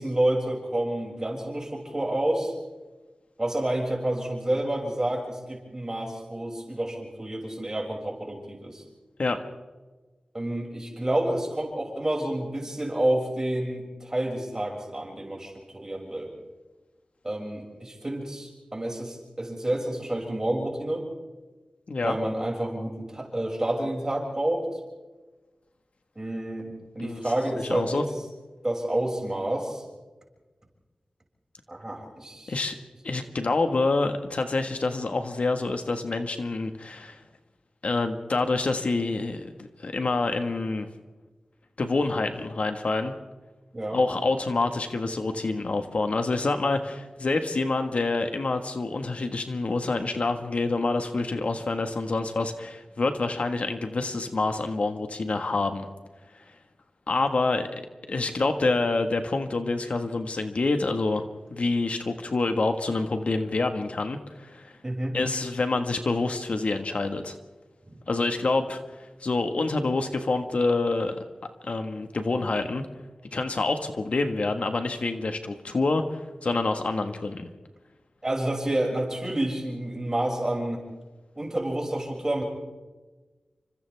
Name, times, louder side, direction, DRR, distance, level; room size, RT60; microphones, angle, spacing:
voice 1, 0.0-2.5 3.4-8.8 10.3-16.3 17.2-21.1 22.0-24.8 26.1-28.0 28.6-29.8 31.7-32.6 43.7-44.0 64.8-65.2 67.9-68.0 78.2-80.8 81.4-82.4, right 1 dB, 25° right, -1 dB, 6.4 m, -29 dB
voice 2, 27.5-28.0 32.5-32.8 33.0-37.2 37.8-40.9 41.8-43.1 43.9-55.9 57.1-57.8 58.1-61.2 61.5-64.7 65.1-67.4 68.1-71.2 71.6-72.8 73.3-77.5, left 3 dB, 65° left, 6 dB, 1.6 m, -27 dB
29.5 x 25.5 x 3.5 m, 1.3 s
wide cardioid pair, 90°, 2 cm